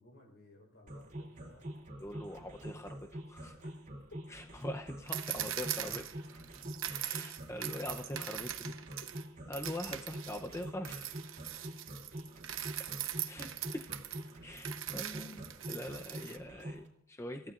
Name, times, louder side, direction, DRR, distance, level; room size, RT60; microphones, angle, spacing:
voice 1, 0.0-1.8 3.6-3.7 4.1-4.2, left 1 dB, 60° left, 1 dB, 4.3 m, -58 dB
sound 1, 0.9-16.8, right 1 dB, 40° right, 2.9 m, -45 dB
voice 2, 2.0-3.6 4.3-6.1 6.9-8.8 9.5-11.2 12.8-12.9 13.3-13.9 14.4-17.5, left 1 dB, 15° left, 4 dB, 0.7 m, -43 dB
sound 2, 5.1-9.2 9.5-16.4, right 11 dB, 75° right, 1.0 m, -41 dB
28.0 x 15.0 x 2.5 m, 0.77 s
head